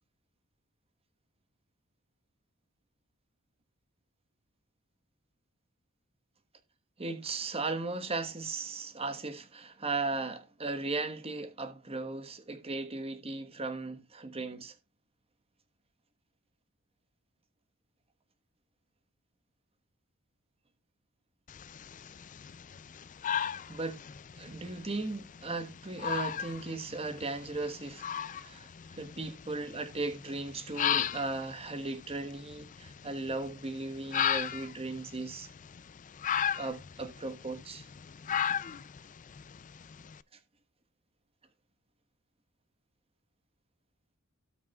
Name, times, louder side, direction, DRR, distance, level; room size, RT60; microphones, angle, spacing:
voice 1, 7.0-14.7 23.4-24.0 24.4-28.0 28.3-28.7 29.0-35.5 36.6-37.9, right 3 dB, 30° right, 1.3 m, -37 dB
sound 1, 21.5-40.2, left 9 dB, 35° left, 0.4 m, -37 dB
17.5 x 6.0 x 2.3 m
head